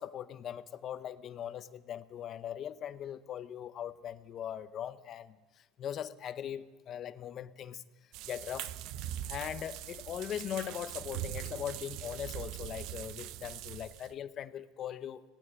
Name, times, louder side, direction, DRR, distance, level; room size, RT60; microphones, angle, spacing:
voice 1, 0.0-8.7 9.3-15.2, left 10 dB, 45° left, 14 dB, 0.8 m, -40 dB
sound 1, 8.1-14.1, right 13 dB, 65° right, 0.7 m, -42 dB
18.0 x 16.0 x 9.0 m, 1.2 s
supercardioid pair, 120°, 0 cm